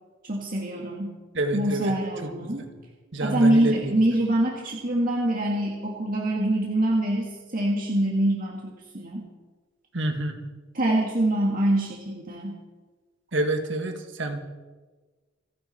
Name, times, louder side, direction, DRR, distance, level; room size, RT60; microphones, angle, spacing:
voice 1, 0.2-1.2 1.5-2.6 3.2-9.3 10.7-12.6, right 1 dB, 45° right, -2 dB, 1.9 m, -25 dB
voice 2, 1.3-1.9 2.2-2.7 3.1-3.8 9.9-10.4 13.3-14.4, right 2 dB, 65° right, 5 dB, 1.7 m, -28 dB
28.5 x 9.8 x 4.3 m, 1.3 s
head